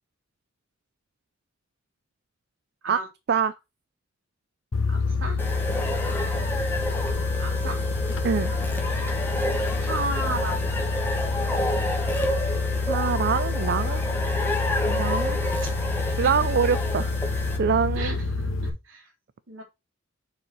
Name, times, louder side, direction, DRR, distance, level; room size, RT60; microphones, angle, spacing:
sound 1, 4.7-18.7, left 3 dB, 75° left, 1.1 m, -27 dB
voice 1, 4.9-5.4 7.4-7.8 9.8-10.7 15.3-15.8 16.2-16.3 17.9-19.1 19.5-19.6, right 2 dB, 70° right, 2.9 m, -34 dB
sound 2, 5.4-17.6, left 1 dB, 10° left, 1.4 m, -30 dB
voice 2, 12.9-14.0 14.9-15.4 16.2-18.1, right 6 dB, 55° right, 0.4 m, -25 dB
6.6 x 4.7 x 4.2 m
head